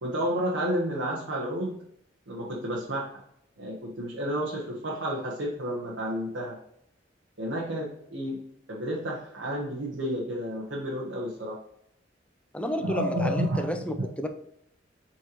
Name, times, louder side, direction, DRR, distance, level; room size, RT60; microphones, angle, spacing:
voice 1, 0.0-1.8 2.3-3.1 3.6-6.6 7.4-8.4 8.7-11.6 12.8-14.1, equal, 85° right, -4 dB, 1.3 m, -31 dB
voice 2, 12.5-14.3, equal, 5° left, 6 dB, 0.6 m, -31 dB
7.7 x 4.5 x 3.1 m, 0.74 s
head